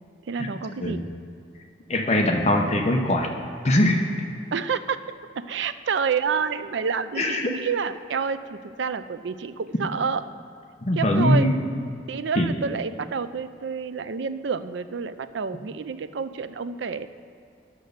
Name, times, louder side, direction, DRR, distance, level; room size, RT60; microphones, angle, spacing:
voice 1, 0.2-1.0 4.5-5.0 5.4-10.2 11.0-11.5 12.1-17.1, right 6 dB, 75° right, 12 dB, 0.4 m, -28 dB
voice 2, 1.9-3.3 3.6-4.0 7.2-7.5 10.8-11.5 12.4-12.5, left 1 dB, 35° left, 2 dB, 0.8 m, -21 dB
10.5 x 6.6 x 6.6 m, 2.5 s
head